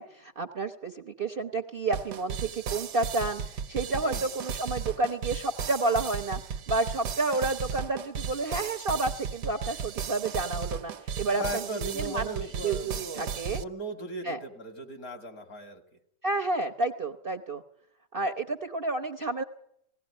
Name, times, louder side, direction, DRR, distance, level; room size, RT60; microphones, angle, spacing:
voice 1, 0.0-6.4 6.7-11.6 12.0-13.6 14.2-14.4 16.2-17.6 18.1-19.4, right 3 dB, 40° right, 5 dB, 1.0 m, -30 dB
sound 1, 1.9-13.6, right 7 dB, 70° right, 1.6 m, -35 dB
voice 2, 3.9-4.3 11.3-13.3 13.6-15.8, right 1 dB, 55° left, 6 dB, 3.1 m, -37 dB
18.5 x 17.5 x 9.9 m, 0.74 s
omnidirectional pair, 1.9 m